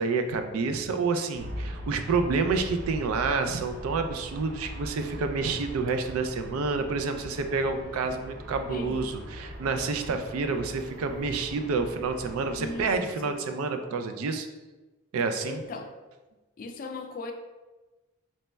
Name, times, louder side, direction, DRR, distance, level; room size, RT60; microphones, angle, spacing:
voice 1, 0.0-14.5 15.1-15.6, right 4 dB, 85° right, 7 dB, 0.4 m, -29 dB
Aircraft, 1.3-13.0, equal, 45° right, 0.6 m, -41 dB
voice 2, 8.7-9.1 12.6-13.5 15.4-15.9 16.6-17.3, left 3 dB, 40° left, 5 dB, 0.3 m, -38 dB
4.0 x 3.1 x 2.2 m, 1.2 s
head